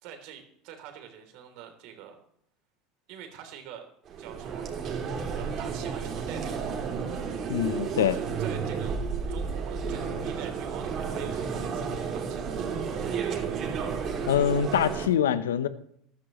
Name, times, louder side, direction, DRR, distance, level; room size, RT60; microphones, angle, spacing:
voice 1, 0.0-2.2 3.1-3.9 4.2-4.7 5.3-6.8 8.0-9.0 9.3-13.0, right 9 dB, 65° right, 5 dB, 3.3 m, -46 dB
sound 1, 4.1-15.1, right 6 dB, 45° right, 3.2 m, -32 dB
voice 2, 7.5-8.2 14.3-15.7, left 9 dB, 90° left, 14 dB, 0.8 m, -24 dB
14.0 x 13.0 x 3.2 m, 0.70 s
hypercardioid pair, 90°, 0 cm